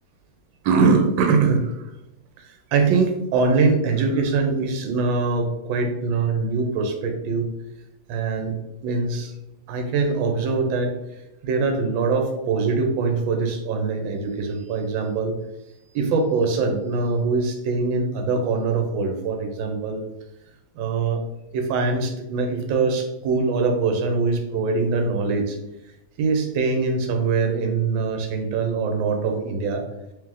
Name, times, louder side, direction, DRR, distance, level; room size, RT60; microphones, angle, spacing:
voice 1, 0.6-1.7 2.4-7.5 8.1-8.6 8.8-9.3 9.7-10.9 11.4-15.3 15.9-20.0 20.7-21.2 21.5-25.6 26.2-29.8, right 4 dB, 75° right, 4 dB, 1.4 m, -23 dB
3.4 x 3.0 x 3.6 m, 0.92 s
omnidirectional pair, 2.1 m